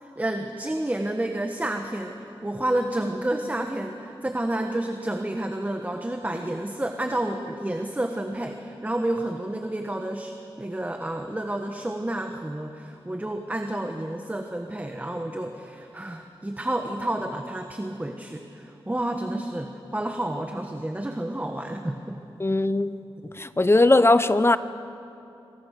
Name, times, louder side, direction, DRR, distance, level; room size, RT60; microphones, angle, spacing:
voice 1, 0.0-22.2, right 1 dB, 15° right, 4 dB, 1.4 m, -30 dB
voice 2, 22.4-23.0 23.4-24.6, left 2 dB, 25° left, 13 dB, 0.8 m, -19 dB
27.0 x 25.0 x 6.7 m, 2.7 s
wide cardioid pair, 95°, 10 cm